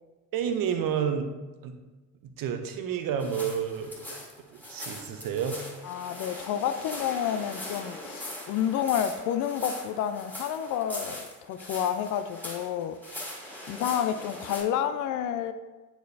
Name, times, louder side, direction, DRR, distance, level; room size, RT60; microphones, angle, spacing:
voice 1, 0.3-1.3 1.6-1.7 2.2-4.1 4.7-5.6, right 7 dB, 45° right, 7 dB, 0.8 m, -30 dB
sound 1, 3.2-14.6, left 1 dB, 5° left, 1.9 m, -41 dB
voice 2, 5.8-13.0 13.7-15.5, left 9 dB, 45° left, 9 dB, 0.4 m, -29 dB
9.1 x 4.4 x 2.7 m, 1.2 s
figure-of-eight pair, 50°, 47 cm